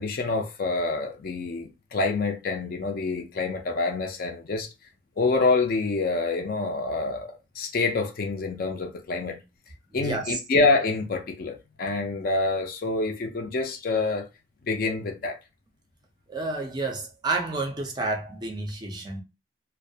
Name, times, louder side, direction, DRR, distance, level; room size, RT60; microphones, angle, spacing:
voice 1, 0.0-4.7 5.2-9.4 9.9-14.3 14.6-15.4, left 3 dB, 45° left, 0.4 m, -27 dB
voice 2, 10.0-10.4 16.3-19.2, right 3 dB, 20° right, 0.4 m, -30 dB
2.3 x 2.1 x 2.6 m
head